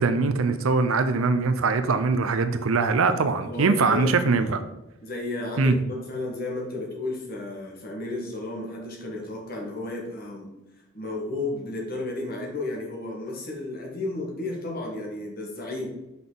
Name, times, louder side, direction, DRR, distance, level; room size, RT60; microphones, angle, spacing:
voice 1, 0.0-4.6 5.6-5.7, right 4 dB, 70° right, 0.5 m, -22 dB
voice 2, 3.0-4.6 5.0-10.5 10.9-15.9, left 2 dB, 45° left, 1.5 m, -33 dB
6.0 x 5.5 x 3.9 m
head